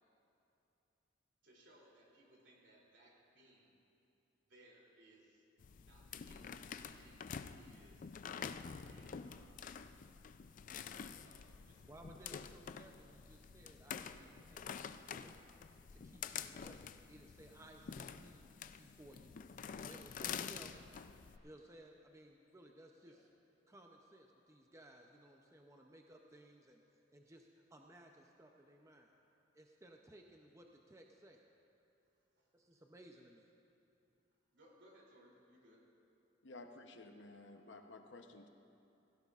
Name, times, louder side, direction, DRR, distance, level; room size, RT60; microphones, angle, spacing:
voice 1, 1.4-3.7 4.4-5.4 5.8-8.1 8.4-9.5 10.8-11.8 23.0-23.2 32.4-32.5 34.5-35.8, right 1 dB, 70° right, -3 dB, 3.0 m, -66 dB
sound 1, 5.6-21.4, left 7 dB, 45° left, 0.3 m, -48 dB
voice 2, 11.9-15.3 15.9-16.8 17.1-18.5 18.8-19.3 19.7-20.7 21.4-23.2 23.7-26.8 27.1-29.1 29.5-31.4 32.5-33.5, right 1 dB, 15° right, 2 dB, 0.5 m, -59 dB
voice 3, 36.4-38.5, left 2 dB, 70° left, 5 dB, 0.8 m, -54 dB
17.0 x 16.0 x 2.4 m, 2.8 s
head